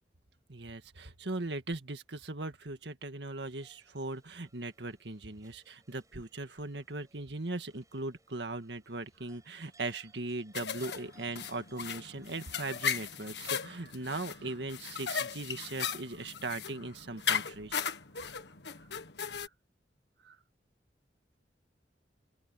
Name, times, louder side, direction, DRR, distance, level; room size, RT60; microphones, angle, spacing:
voice 1, 0.5-17.8 19.3-19.5 20.2-20.4, right 2 dB, 75° right, 1.9 m, -39 dB
sound 1, 3.4-13.7, right 3 dB, 20° right, 7.2 m, -63 dB
sound 2, 10.5-19.5, left 7 dB, 75° left, 1.7 m, -37 dB
open air
head